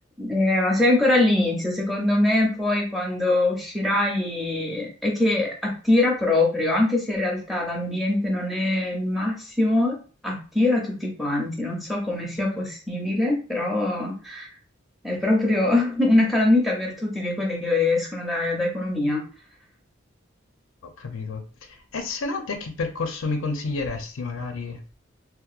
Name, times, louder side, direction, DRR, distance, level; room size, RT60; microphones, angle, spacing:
voice 1, 0.2-10.0 10.2-14.5 15.0-19.2, left 2 dB, ahead, 0.5 m, -23 dB
voice 2, 20.8-24.8, left 3 dB, 90° left, 0.5 m, -30 dB
2.8 x 2.1 x 2.4 m
head